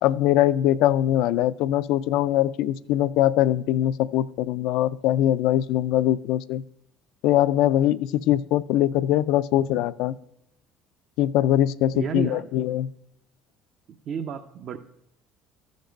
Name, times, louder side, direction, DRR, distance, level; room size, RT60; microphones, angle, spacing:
voice 1, 0.0-6.6 7.2-10.1 11.2-12.9, left 12 dB, 75° left, 16 dB, 0.3 m, -22 dB
voice 2, 11.9-12.5 14.1-14.8, right 7 dB, 55° right, 6 dB, 0.6 m, -31 dB
14.0 x 5.2 x 5.1 m, 0.80 s
supercardioid pair, 85°, 0 cm